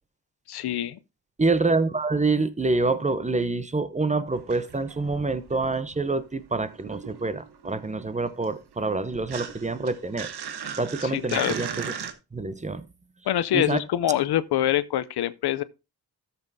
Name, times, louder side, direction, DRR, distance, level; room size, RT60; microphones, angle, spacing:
voice 1, 0.5-1.0 11.0-11.6 13.3-15.6, left 12 dB, 80° left, 0.6 m, -25 dB
voice 2, 1.4-10.3 10.8-11.9 12.3-12.9 13.5-13.8, right 3 dB, 20° right, 0.7 m, -26 dB
sound 1, 4.3-6.3 6.5-12.1, right 7 dB, 75° right, 1.2 m, -38 dB
13.0 x 7.1 x 2.7 m
cardioid pair, 70°, 39 cm